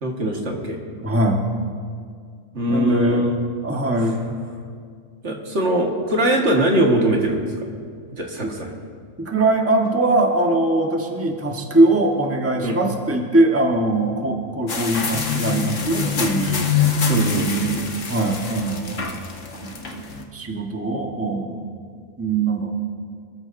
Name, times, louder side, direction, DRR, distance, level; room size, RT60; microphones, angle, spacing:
voice 1, 0.0-0.8 2.5-3.4 5.2-7.7 8.1-8.8 12.6-12.8 17.1-17.5, right 1 dB, 65° right, 0 dB, 1.9 m, -21 dB
voice 2, 0.9-1.5 2.7-3.2 3.6-4.1 8.4-8.5 9.2-16.7 17.4-17.8 18.1-19.2 19.6-21.7 22.2-22.7, right 2 dB, 10° right, 1 dB, 1.2 m, -21 dB
Grup Simon, 14.7-20.2, left 5 dB, 80° left, 1.6 m, -25 dB
25.5 x 14.0 x 2.6 m, 2.1 s
omnidirectional pair, 1.3 m